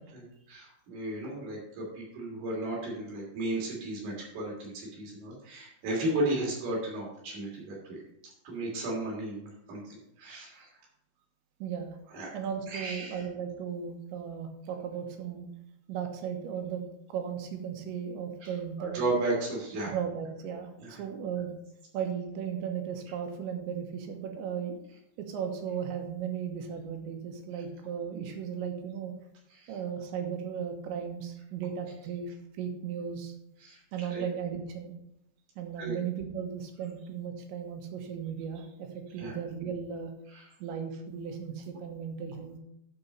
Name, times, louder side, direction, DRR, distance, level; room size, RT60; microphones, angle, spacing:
voice 1, 0.1-8.0 8.4-10.7 12.1-12.3 12.7-13.2 18.4-18.5 18.8-20.0 20.8-21.0 29.5-29.8 33.6-33.8 34.1-34.2 35.8-36.0 39.2-39.4 40.3-40.5, right 2 dB, 60° right, -3 dB, 4.7 m, -34 dB
voice 2, 11.6-12.0 12.3-15.5 15.9-16.8 17.1-19.1 19.9-21.5 21.9-24.8 25.2-29.1 29.7-33.3 33.9-35.0 35.6-40.1 40.6-42.6, right 7 dB, 80° right, 4 dB, 3.4 m, -36 dB
11.5 x 5.0 x 5.5 m, 0.80 s
omnidirectional pair, 5.3 m